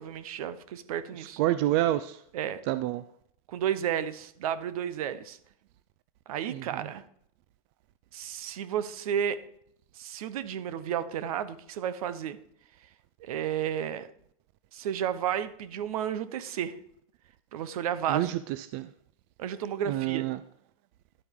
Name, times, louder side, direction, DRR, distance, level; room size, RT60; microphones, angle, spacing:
voice 1, 0.0-1.4 2.3-2.6 3.5-5.4 6.3-7.0 8.1-9.4 9.9-12.4 13.2-14.1 14.7-16.8 17.5-18.3 19.4-20.3, right 9 dB, 75° right, 14 dB, 1.0 m, -32 dB
voice 2, 1.4-2.2 2.7-3.0 6.5-6.6 18.1-18.4 18.7-18.9 19.9-20.4, right 14 dB, 45° right, 13 dB, 0.5 m, -27 dB
11.0 x 8.1 x 3.7 m, 0.66 s
supercardioid pair, 145°, 19 cm